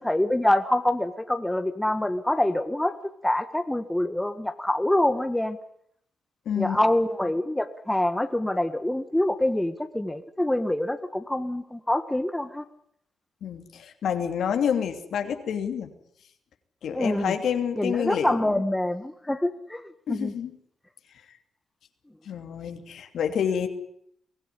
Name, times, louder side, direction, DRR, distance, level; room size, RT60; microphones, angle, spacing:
voice 1, 0.0-2.9 3.2-5.6 6.6-12.6 16.9-17.4 17.7-20.3, left 1 dB, 10° left, 9 dB, 1.7 m, -25 dB
voice 2, 6.4-6.8 13.4-15.9 16.8-18.4 20.1-20.6 22.3-23.7, left 8 dB, 80° left, 6 dB, 2.9 m, -28 dB
23.0 x 16.0 x 9.9 m, 0.70 s
cardioid pair, 70°, 0 cm